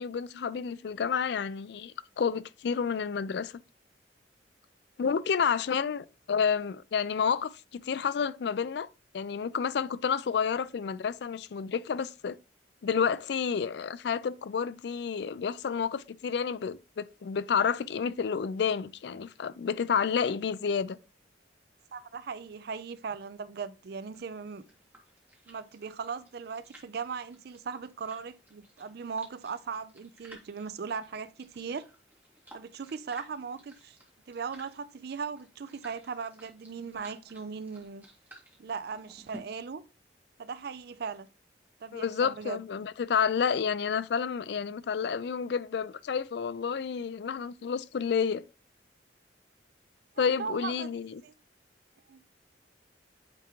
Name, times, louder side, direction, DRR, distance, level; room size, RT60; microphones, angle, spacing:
voice 1, 0.0-3.5 5.0-8.9 9.1-12.4 12.8-21.0 41.9-48.4 50.2-51.1, left 6 dB, 65° left, 0.4 m, -30 dB
voice 2, 21.9-24.6 25.5-31.9 32.5-34.0 34.3-38.0 38.6-39.8 40.4-41.3 41.8-42.6 50.1-50.9 51.2-51.3 52.1-52.2, right 5 dB, 55° right, 0.4 m, -38 dB
sound 1, 24.1-39.4, equal, 10° right, 1.8 m, -56 dB
8.8 x 3.6 x 3.0 m
head